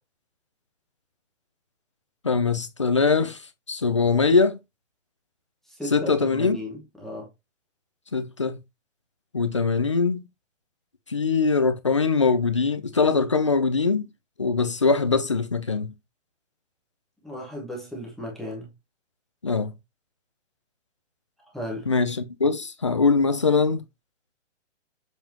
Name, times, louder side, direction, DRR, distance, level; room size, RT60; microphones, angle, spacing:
voice 1, 2.2-3.4 3.7-4.6 5.9-6.6 8.1-8.6 9.3-10.2 11.1-14.1 14.4-15.9 19.4-19.7 21.9-23.8, left 4 dB, 25° left, 0.4 m, -22 dB
voice 2, 5.7-7.3 17.2-18.7 21.5-21.9, equal, ahead, 0.9 m, -35 dB
7.3 x 5.4 x 2.9 m
hypercardioid pair, 170°, 37 cm